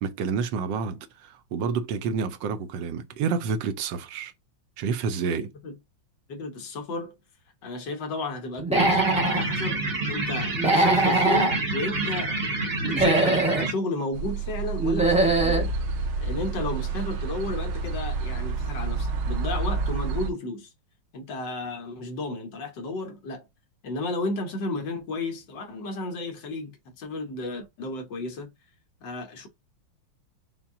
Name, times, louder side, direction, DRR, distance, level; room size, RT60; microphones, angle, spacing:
voice 1, 0.0-4.3 4.8-5.5, right 5 dB, 75° right, 1.2 m, -29 dB
voice 2, 5.3-5.7 6.3-7.1 7.6-12.4 12.8-15.7 16.2-20.7 21.1-23.5 23.8-28.5 29.0-29.5, left 2 dB, 65° left, 1.6 m, -33 dB
Human voice / Animal, 8.6-9.4 10.5-11.5 12.8-13.7 14.8-15.7, right 2 dB, 10° right, 0.4 m, -22 dB
sound 1, 8.7-13.7, right 2 dB, 40° right, 1.0 m, -28 dB
sound 2, 14.1-20.3, right 4 dB, 90° right, 1.6 m, -29 dB
5.6 x 2.2 x 3.6 m
omnidirectional pair, 2.2 m